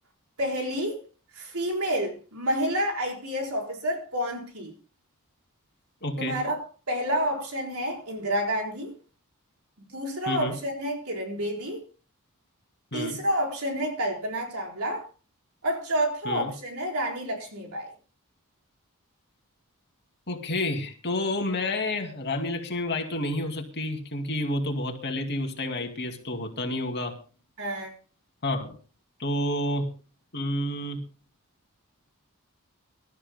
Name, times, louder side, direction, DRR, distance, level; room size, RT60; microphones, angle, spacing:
voice 1, 0.4-1.0 1.3-4.7 6.2-6.6 6.9-8.9 9.9-11.8 12.9-15.0 15.6-17.9 27.6-27.9, equal, 75° right, 1 dB, 4.4 m, -29 dB
voice 2, 6.0-6.4 10.3-10.6 12.9-13.2 16.2-16.5 20.3-27.2 28.4-28.8 29.2-29.9 30.3-31.0, left 1 dB, 50° left, 3 dB, 2.5 m, -29 dB
25.0 x 13.0 x 2.2 m, 0.36 s
head